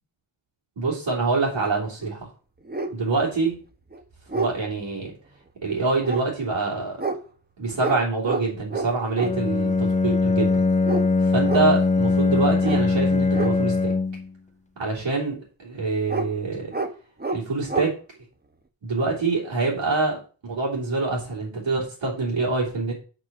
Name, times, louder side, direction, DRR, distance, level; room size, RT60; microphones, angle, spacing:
voice 1, 0.8-2.3 2.9-3.5 4.3-5.1 5.6-7.0 7.6-10.6 11.3-13.9 14.8-16.7 17.3-17.9 18.8-22.9, right 3 dB, 80° right, -4 dB, 3.2 m, -25 dB
sound 1, 2.0-2.1 2.6-2.9 3.5-3.6 3.9-4.5 6.0-6.2 7.0-7.2 7.8-8.0 8.2-8.4 8.7-9.3 10.8-11.1 11.4-11.7 12.6-12.8 13.3-13.5 16.1-16.3 16.7-16.9 17.2-17.4 17.7-17.9, right 3 dB, 20° right, 1.0 m, -28 dB
Bowed string instrument, 9.2-14.3, left 3 dB, 15° left, 0.7 m, -21 dB
7.0 x 5.7 x 6.1 m, 0.36 s
wide cardioid pair, 95°, 45 cm